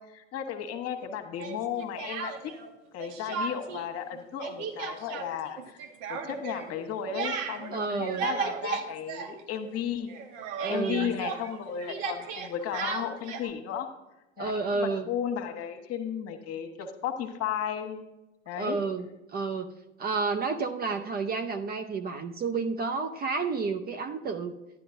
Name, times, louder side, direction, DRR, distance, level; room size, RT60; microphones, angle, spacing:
voice 1, 0.0-2.5 2.9-5.8 6.1-10.1 10.7-13.9 14.4-18.0 18.5-18.8, left 8 dB, 45° left, 6 dB, 1.4 m, -34 dB
Speech, 1.4-2.7 3.0-3.9 4.1-9.8 10.1-13.5, right 6 dB, 55° right, 1.2 m, -36 dB
voice 2, 7.7-8.3 10.6-11.1 14.4-15.1 18.6-19.1 19.3-19.7 20.0-24.6, right 4 dB, 25° right, 8 dB, 0.6 m, -30 dB
12.0 x 10.0 x 2.6 m, 0.97 s
hypercardioid pair, 80°, 36 cm